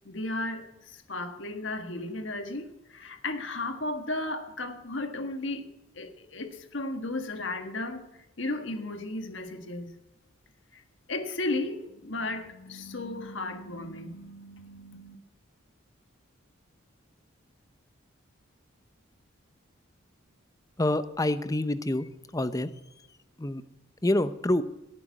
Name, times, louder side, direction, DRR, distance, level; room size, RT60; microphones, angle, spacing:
voice 1, 0.0-5.7 5.9-8.1 8.4-9.9 10.7-10.8 11.1-15.2, left 2 dB, 65° left, 6 dB, 1.6 m, -35 dB
voice 2, 20.8-22.7 23.0-23.1 23.4-23.6 24.0-24.6, left 1 dB, 15° left, 12 dB, 0.7 m, -27 dB
18.0 x 9.0 x 7.2 m, 0.93 s
head